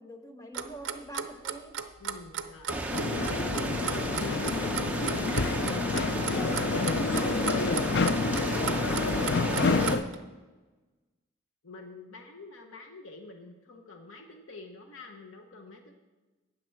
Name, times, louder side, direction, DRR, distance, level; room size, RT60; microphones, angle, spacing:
voice 1, 0.0-1.8, equal, 15° left, 4 dB, 0.9 m, -44 dB
Clock, 0.5-10.1, right 8 dB, 65° right, 0.6 m, -35 dB
voice 2, 2.0-5.6 6.1-9.7 11.6-15.9, left 3 dB, 80° left, 4 dB, 0.9 m, -47 dB
sound 1, 2.7-10.0, right 1 dB, 5° right, 0.7 m, -33 dB
sound 2, 2.9-10.0, left 4 dB, 55° left, 0.4 m, -29 dB
12.5 x 8.7 x 4.6 m, 1.2 s
head